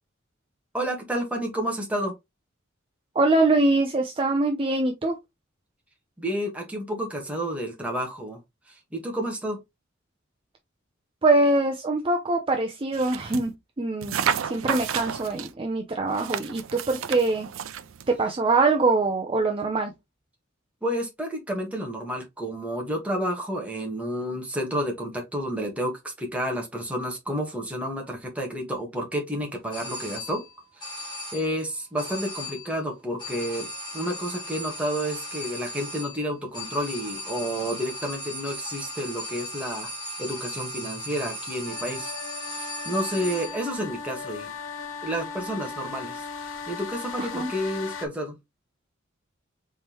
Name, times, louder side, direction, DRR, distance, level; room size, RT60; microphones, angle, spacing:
voice 1, 0.7-2.1 6.2-8.4 8.7-9.6 20.8-30.4 30.8-39.9 40.2-42.1 42.5-44.5 45.0-48.4, equal, 5° right, 1.4 m, -30 dB
voice 2, 3.2-5.1 11.2-13.5 13.8-14.2 14.4-17.5 18.1-19.9 47.2-47.5, right 2 dB, 25° right, 0.6 m, -23 dB
sound 1, 12.9-13.5 14.0-15.5 16.1-18.1, right 8 dB, 80° right, 0.5 m, -31 dB
sound 2, 29.7-30.5 30.8-31.6 32.0-32.8 33.2-43.7, left 1 dB, 25° left, 2.3 m, -37 dB
sound 3, 41.7-48.1, left 5 dB, 70° left, 0.7 m, -37 dB
4.4 x 3.7 x 2.9 m
head